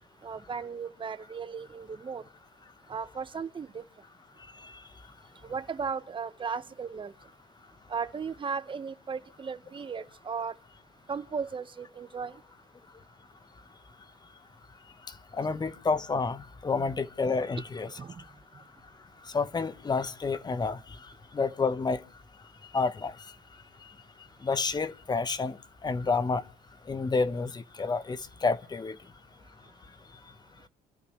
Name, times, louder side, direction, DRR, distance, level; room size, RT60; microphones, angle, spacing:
voice 1, 0.2-2.2 2.9-3.8 5.4-7.1 7.9-10.5 11.1-12.4 16.8-16.9 18.0-18.2, right 5 dB, 30° right, 1.3 m, -36 dB
voice 2, 15.1-17.9 19.2-22.0 22.7-23.3 23.8-23.9 24.4-26.4 26.9-29.0, left 4 dB, 25° left, 1.1 m, -30 dB
28.5 x 14.0 x 3.2 m
cardioid pair, 110°, 17 cm